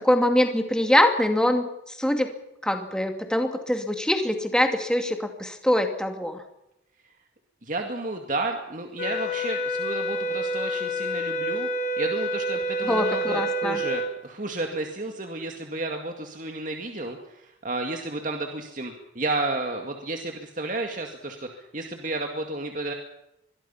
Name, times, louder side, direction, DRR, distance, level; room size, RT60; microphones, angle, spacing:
voice 1, 0.0-2.3 2.6-6.4 12.8-13.8, left 1 dB, 5° left, 5 dB, 2.3 m, -23 dB
voice 2, 7.6-11.7 12.0-22.9, right 2 dB, 45° right, 3 dB, 2.2 m, -32 dB
sound 1, 9.0-14.1, equal, 45° left, 3.7 m, -28 dB
25.5 x 22.5 x 5.8 m, 0.83 s
head